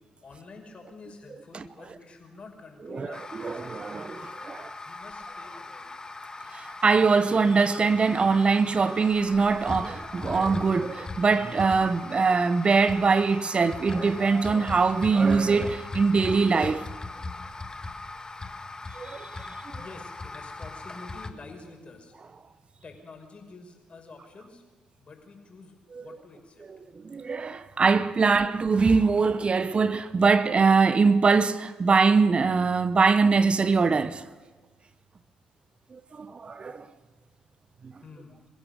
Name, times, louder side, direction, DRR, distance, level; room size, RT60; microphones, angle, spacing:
voice 1, 0.2-4.3 4.8-5.9 19.8-22.1 22.8-24.6 25.0-26.6 38.0-38.4, left 3 dB, 40° left, 5.7 m, -48 dB
sound 1, 3.1-21.3, left 3 dB, 25° left, 1.8 m, -39 dB
voice 2, 3.4-4.7 6.5-16.9 18.9-19.5 25.9-26.0 26.9-34.2 35.9-36.9 37.8-37.9, right 4 dB, 40° right, 0.9 m, -23 dB
27.0 x 15.5 x 6.8 m
hypercardioid pair, 45°, 3 cm